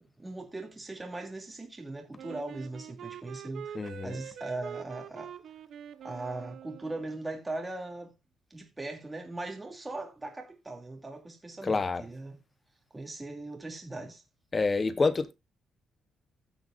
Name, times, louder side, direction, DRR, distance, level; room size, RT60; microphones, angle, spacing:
voice 1, 0.2-5.3 6.0-8.1 8.5-12.4 12.9-14.2, right 2 dB, 15° right, 2.7 m, -39 dB
Wind instrument woodwind instrument, 2.2-7.2, right 9 dB, 65° right, 0.8 m, -45 dB
voice 2, 3.7-4.2 11.6-12.0 14.5-15.3, left 4 dB, 30° left, 1.0 m, -27 dB
15.5 x 6.4 x 2.6 m
cardioid pair, 90°, 0 cm